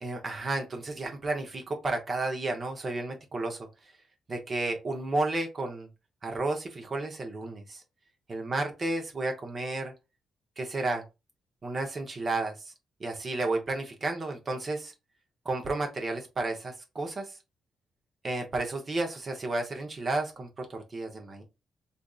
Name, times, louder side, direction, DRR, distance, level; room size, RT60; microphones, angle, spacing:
voice 1, 0.0-3.6 4.3-5.9 6.2-7.8 8.3-9.9 10.6-11.0 11.6-12.7 13.0-14.9 15.4-17.4 18.2-21.4, right 2 dB, 35° right, 3 dB, 0.8 m, -32 dB
3.5 x 2.5 x 2.3 m, 0.26 s
cardioid pair, 100°, 0 cm